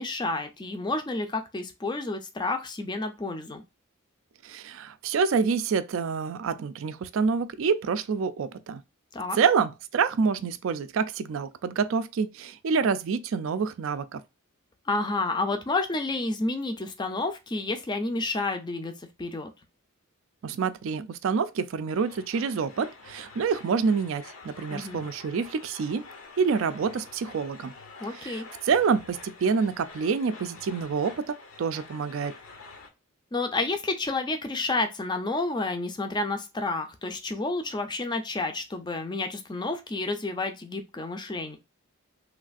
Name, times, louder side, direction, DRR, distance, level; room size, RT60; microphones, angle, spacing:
voice 1, 0.0-3.6 9.1-9.4 14.9-19.5 24.7-25.0 28.0-28.5 33.3-41.6, left 2 dB, 20° left, 0.4 m, -30 dB
voice 2, 4.4-8.8 9.3-14.2 20.4-26.0 26.4-27.7 28.1-32.3, right 5 dB, 60° right, 0.3 m, -27 dB
sound 1, 21.9-32.9, left 3 dB, 75° left, 0.8 m, -47 dB
3.2 x 2.4 x 2.4 m
head